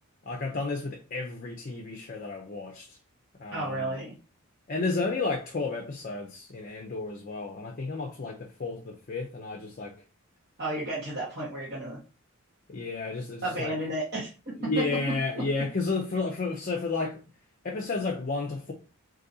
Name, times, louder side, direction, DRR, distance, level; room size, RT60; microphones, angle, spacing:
voice 1, 0.2-3.0 3.4-3.9 4.7-10.0 12.7-13.8 14.6-17.2 17.6-18.7, left 3 dB, 40° left, 0.5 m, -32 dB
voice 2, 3.5-4.1 10.6-12.0 13.4-14.3 15.1-15.2, right 1 dB, 45° right, 1.1 m, -32 dB
3.9 x 2.7 x 2.6 m
head